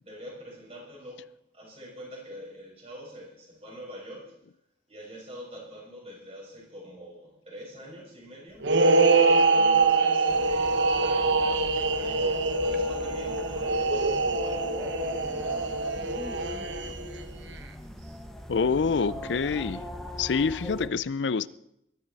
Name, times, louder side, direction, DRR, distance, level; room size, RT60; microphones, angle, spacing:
voice 1, 0.0-1.3 1.5-4.4 4.9-8.7 9.2-16.0, equal, 35° right, 6.3 m, -45 dB
sound 1, 8.6-17.2, right 3 dB, 90° right, 1.1 m, -24 dB
sound 2, 10.3-20.9, equal, ahead, 1.2 m, -40 dB
voice 2, 18.5-19.8 20.2-21.5, left 5 dB, 85° left, 0.5 m, -26 dB
21.5 x 12.5 x 4.1 m
head